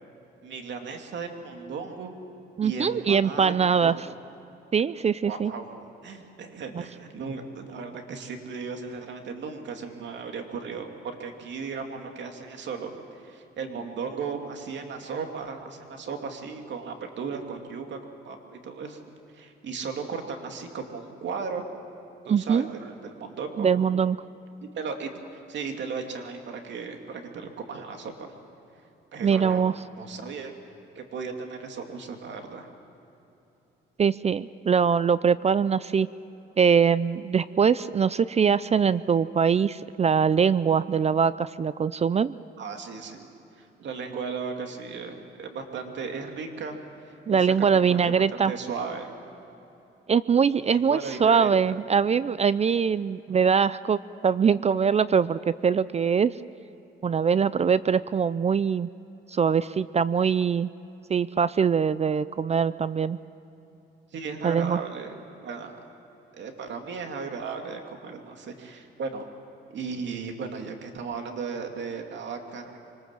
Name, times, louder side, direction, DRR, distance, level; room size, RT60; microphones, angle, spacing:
voice 1, 0.4-2.1 2.6-4.1 5.2-12.9 13.2-18.0 18.2-19.0 19.3-21.6 22.2-23.7 24.7-28.3 29.1-30.5 30.9-32.7 42.6-43.3 43.6-46.8 47.0-49.2 50.6-51.8 64.1-65.8 66.3-69.3 69.7-72.8, right 5 dB, 65° right, 4 dB, 2.5 m, -36 dB
voice 2, 2.6-4.0 4.7-5.5 6.7-6.8 22.3-22.7 23.6-24.2 29.2-29.7 34.0-36.1 36.6-42.3 47.3-48.5 50.1-56.3 57.0-58.9 59.3-60.7 61.1-63.2 64.4-64.8, right 6 dB, 35° right, 17 dB, 0.4 m, -22 dB
25.0 x 20.0 x 7.5 m, 3.0 s
cardioid pair, 90°, 20 cm